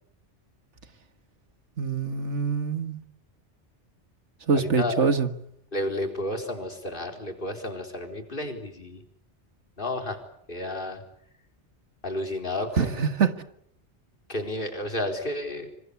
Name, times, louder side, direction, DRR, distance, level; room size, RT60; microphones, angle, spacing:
voice 1, 1.8-3.0 4.5-5.3 12.8-13.3, right 5 dB, 90° right, 10 dB, 2.0 m, -24 dB
voice 2, 4.5-5.1 5.7-9.0 9.8-10.2 10.5-11.0 12.0-13.1 14.3-15.7, left 1 dB, 50° left, 5 dB, 4.4 m, -31 dB
27.0 x 25.0 x 8.4 m, 0.70 s
omnidirectional pair, 1.2 m